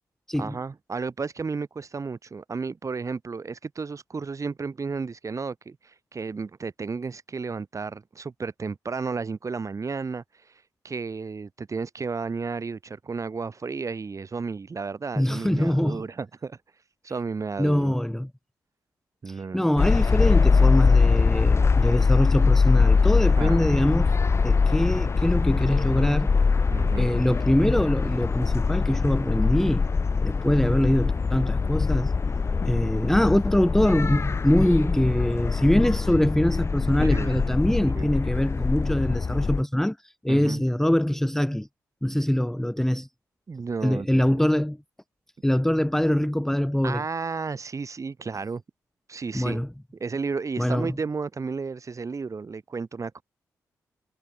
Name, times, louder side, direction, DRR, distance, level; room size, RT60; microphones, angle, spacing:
voice 1, 0.4-10.2 10.8-16.6 17.0-18.0 19.2-19.7 23.4-23.6 26.7-27.1 37.0-37.5 38.0-38.1 40.3-40.6 43.5-44.4 46.8-48.6 49.1-49.6 50.0-53.2, right 4 dB, 45° right, 3.7 m, -33 dB
voice 2, 15.2-16.0 17.6-18.3 19.3-24.1 24.4-26.3 27.0-29.9 30.2-32.1 32.7-41.7 42.0-43.1 43.8-44.8 45.4-47.0 49.3-49.7 50.6-50.9, left 1 dB, 5° left, 0.9 m, -23 dB
sound 1, 19.8-39.6, left 4 dB, 35° left, 0.6 m, -22 dB
supercardioid pair, 45°, 8 cm